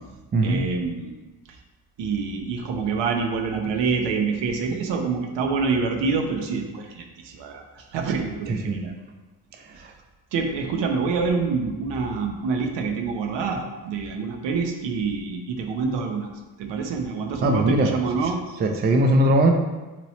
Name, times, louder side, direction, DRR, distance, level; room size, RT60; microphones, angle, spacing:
voice 1, 0.4-1.2 2.0-8.9 9.7-9.9 10.3-16.3 16.6-18.4, right 4 dB, 70° right, 4 dB, 0.6 m, -26 dB
voice 2, 17.4-17.9 18.6-19.5, right 1 dB, 25° right, 4 dB, 0.3 m, -19 dB
3.0 x 2.9 x 2.7 m, 1.2 s
supercardioid pair, 50°, 45 cm